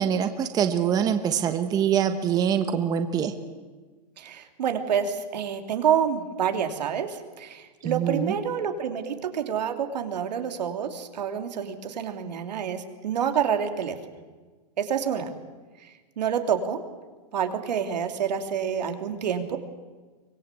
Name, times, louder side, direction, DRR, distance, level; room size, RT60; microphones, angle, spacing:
voice 1, 0.0-3.3 7.8-8.3, right 8 dB, 20° right, 8 dB, 1.1 m, -24 dB
voice 2, 4.2-14.0 14.8-15.3 16.2-16.8 17.3-19.6, right 8 dB, 80° right, 6 dB, 3.0 m, -28 dB
24.5 x 19.0 x 8.4 m, 1.4 s
hypercardioid pair, 155°, 21 cm